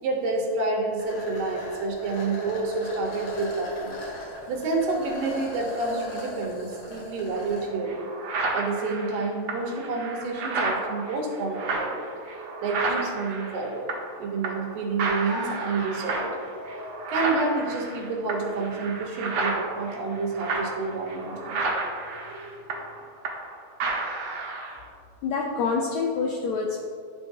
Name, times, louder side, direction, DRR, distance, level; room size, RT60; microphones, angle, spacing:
voice 1, 0.0-4.0 4.5-8.0 8.5-13.9 14.2-16.3 16.8-21.7 22.7-22.8, right 3 dB, 85° right, 0 dB, 2.8 m, -29 dB
sound 1, 1.0-7.7, left 1 dB, 55° left, 2.5 m, -38 dB
sound 2, 7.3-7.4 7.8-14.2 14.4-14.7 15.0-23.5 23.8-24.8, right 3 dB, 65° right, 1.9 m, -31 dB
sound 3, 15.2-23.2, left 2 dB, 30° left, 1.5 m, -45 dB
voice 2, 25.2-26.8, left 4 dB, 80° left, 0 dB, 1.6 m, -26 dB
12.5 x 4.4 x 2.7 m, 2.2 s
omnidirectional pair, 3.9 m